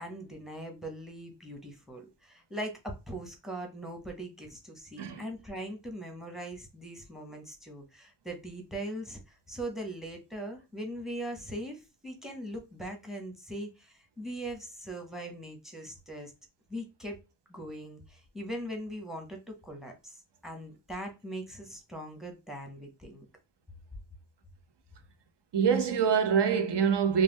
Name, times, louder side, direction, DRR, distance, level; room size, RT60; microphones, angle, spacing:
voice 1, 0.0-16.3 16.7-17.2 17.5-23.3, right 1 dB, ahead, 0.9 m, -40 dB
voice 2, 25.5-27.2, right 7 dB, 60° right, 0.7 m, -25 dB
2.4 x 2.1 x 3.5 m
cardioid pair, 60°, 47 cm